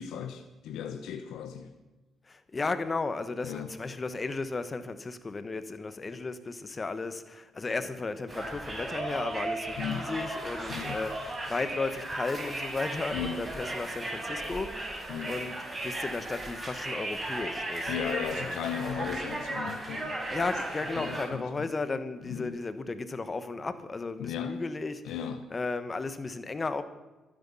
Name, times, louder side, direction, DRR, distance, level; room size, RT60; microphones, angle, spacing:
voice 1, 0.0-1.7 3.4-3.7 9.8-10.1 10.7-11.0 13.1-13.4 15.1-15.3 17.9-20.2 21.0-21.7 22.3-22.6 24.2-24.7 25.0-25.5, left 8 dB, 85° left, 7 dB, 1.1 m, -36 dB
voice 2, 2.3-15.6 15.8-18.0 18.3-18.9 20.3-26.8, left 3 dB, 30° left, 12 dB, 1.3 m, -35 dB
Conversation, 8.3-21.3, right 2 dB, 25° right, 5.8 m, -36 dB
23.5 x 10.5 x 5.6 m, 1.1 s
cardioid pair, 90°, 0 cm